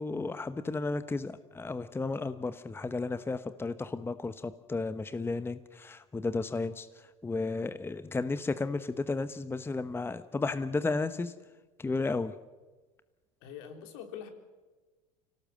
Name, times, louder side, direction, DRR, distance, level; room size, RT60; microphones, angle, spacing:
voice 1, 0.0-6.9 7.2-11.3 11.8-12.3, left 3 dB, 15° left, 12 dB, 1.0 m, -33 dB
voice 2, 13.4-14.3, left 8 dB, 70° left, 5 dB, 3.8 m, -43 dB
25.0 x 17.5 x 7.7 m, 1.3 s
hypercardioid pair, 90°, 17 cm